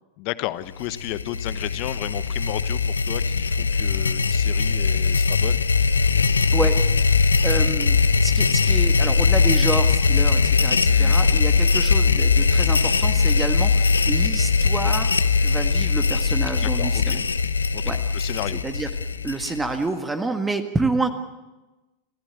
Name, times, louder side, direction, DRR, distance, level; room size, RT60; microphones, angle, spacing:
voice 1, 0.2-5.6 10.8-11.2 16.6-17.2 17.7-18.6, left 17 dB, 45° left, 14 dB, 1.1 m, -33 dB
sound 1, 0.8-19.9, left 4 dB, 75° left, 0.9 m, -20 dB
voice 2, 6.5-15.1 15.4-17.3 17.8-18.3 18.6-18.9 19.2-21.1, right 3 dB, 10° right, 7 dB, 1.7 m, -29 dB
28.0 x 15.0 x 8.5 m, 1.1 s
figure-of-eight pair, 90°, 0 cm